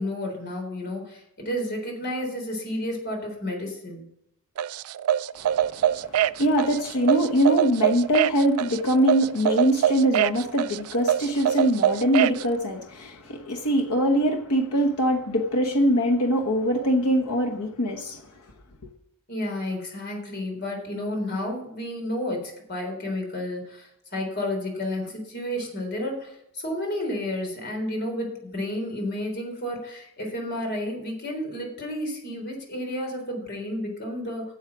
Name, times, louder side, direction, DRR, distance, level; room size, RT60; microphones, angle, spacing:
voice 1, 0.0-4.1 19.3-34.4, left 1 dB, 45° left, 3.8 m, -31 dB
sound 1, 4.6-12.4, right 10 dB, 70° right, 0.3 m, -24 dB
voice 2, 5.4-18.2, equal, 90° left, 1.1 m, -23 dB
10.5 x 7.4 x 6.0 m
head